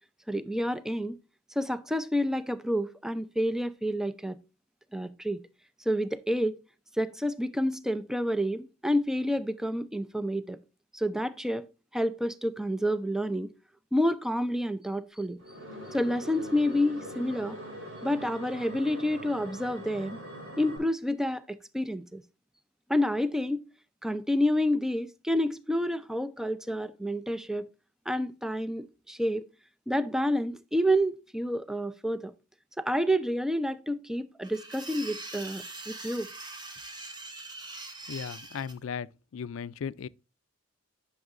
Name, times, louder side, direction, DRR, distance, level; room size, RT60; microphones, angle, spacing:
voice 1, 0.3-1.2 1.6-4.4 4.9-5.4 5.9-6.5 7.0-10.6 10.9-11.7 11.9-13.5 13.9-15.4 15.9-17.6 18.0-20.2 20.6-22.2 22.9-23.6 24.0-27.7 28.1-29.4 29.9-32.3 32.8-36.3, equal, ahead, 0.4 m, -29 dB
sound 1, 15.4-20.8, equal, 85° right, 3.9 m, -42 dB
sound 2, 34.4-38.7, right 2 dB, 20° right, 0.9 m, -42 dB
voice 2, 38.1-39.1 39.3-40.1, left 7 dB, 80° left, 0.4 m, -36 dB
10.5 x 6.3 x 2.5 m
head